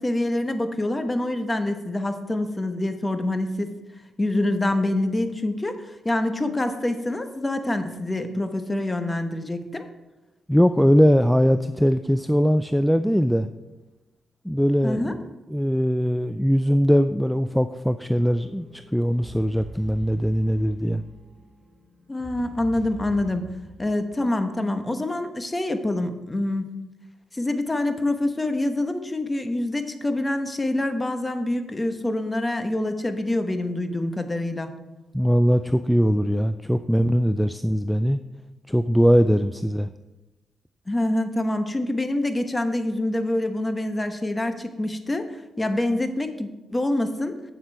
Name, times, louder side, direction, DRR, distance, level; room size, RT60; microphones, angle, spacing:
voice 1, 0.0-3.7 4.2-9.9 14.8-15.1 22.1-23.4 23.8-26.8 27.3-34.7 40.9-45.3 45.6-47.3, left 1 dB, 20° left, 8 dB, 1.1 m, -26 dB
voice 2, 10.5-13.5 14.4-21.0 35.1-38.2 38.7-39.9, equal, ahead, 11 dB, 0.4 m, -21 dB
sound 1, 18.2-24.9, equal, 20° right, 2.1 m, -44 dB
8.4 x 7.3 x 4.6 m, 1.1 s
supercardioid pair, 55°, 0 cm